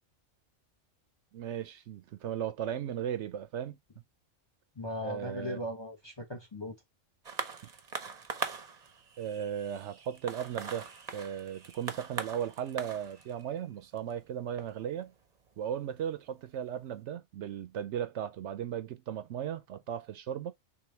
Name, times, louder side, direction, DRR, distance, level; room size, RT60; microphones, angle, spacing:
voice 1, 1.3-3.8 5.0-5.6 7.4-7.5 9.2-10.9 11.1-15.1 15.6-20.5, right 9 dB, 70° right, 0.8 m, -36 dB
voice 2, 4.8-6.7, left 1 dB, 25° left, 0.7 m, -38 dB
sound 1, 7.2-16.1 16.9-17.0, right 5 dB, 40° right, 0.7 m, -42 dB
4.8 x 3.4 x 3.2 m
omnidirectional pair, 1.3 m